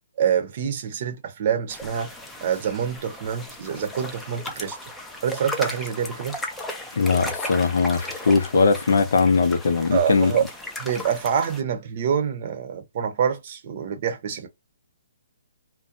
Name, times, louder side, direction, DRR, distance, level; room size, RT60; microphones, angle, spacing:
voice 1, 0.2-2.1 2.4-4.8 5.2-6.4 9.9-10.5 10.8-14.5, right 8 dB, 45° right, 0.7 m, -26 dB
sound 1, 1.7-11.6, left 1 dB, 5° left, 0.4 m, -36 dB
voice 2, 7.0-10.3, left 4 dB, 75° left, 0.6 m, -20 dB
2.5 x 2.2 x 2.6 m
hypercardioid pair, 155°, 0 cm